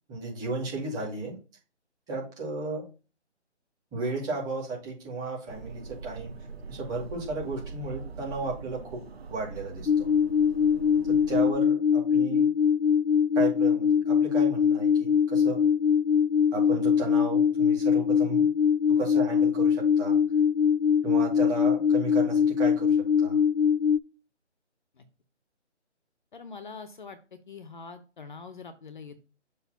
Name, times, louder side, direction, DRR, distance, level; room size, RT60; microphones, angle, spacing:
voice 1, 0.1-1.4 2.1-2.8 3.9-6.3 6.7-9.0 9.3-10.1 11.1-12.5 13.3-15.6 16.5-18.4 19.0-20.2 21.0-23.4, right 3 dB, 10° right, -4 dB, 2.3 m, -34 dB
sound 1, 5.5-11.5, right 4 dB, 60° right, 1.2 m, -42 dB
sound 2, 9.9-24.0, left 7 dB, 80° left, 0.8 m, -23 dB
voice 2, 26.3-29.2, left 4 dB, 45° left, 11 dB, 0.9 m, -44 dB
7.0 x 3.2 x 5.8 m, 0.34 s
figure-of-eight pair, 160°, 35 cm